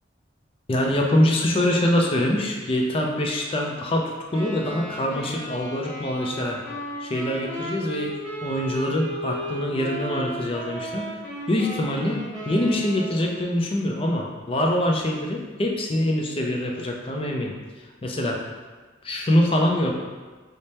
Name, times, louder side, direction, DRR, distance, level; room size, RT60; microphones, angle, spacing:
voice 1, 0.7-6.6 7.0-8.1 8.4-11.1 11.5-12.2 12.5-17.5 18.0-18.4 19.0-19.9, left 1 dB, 30° left, 0 dB, 0.4 m, -24 dB
Wind instrument woodwind instrument, 4.3-13.4, right 1 dB, 5° left, 1.1 m, -35 dB
3.3 x 2.1 x 4.1 m, 1.3 s
head